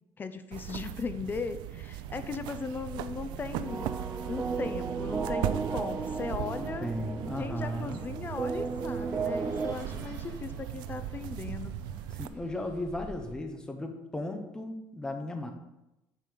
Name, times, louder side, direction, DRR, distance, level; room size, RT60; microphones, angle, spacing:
voice 1, 0.2-4.0 4.3-6.9 7.4-11.8, left 4 dB, 25° left, 11 dB, 0.5 m, -38 dB
sound 1, 0.5-12.3, right 12 dB, 85° right, 0.5 m, -38 dB
Bus, 2.7-13.3, right 2 dB, 60° right, 1.8 m, -49 dB
sound 2, 3.7-9.7, right 4 dB, 20° right, 0.4 m, -35 dB
voice 2, 6.6-8.0 12.2-15.5, left 1 dB, 10° left, 4 dB, 1.0 m, -36 dB
7.4 x 5.3 x 6.9 m, 0.94 s
cardioid pair, 145°, 8 cm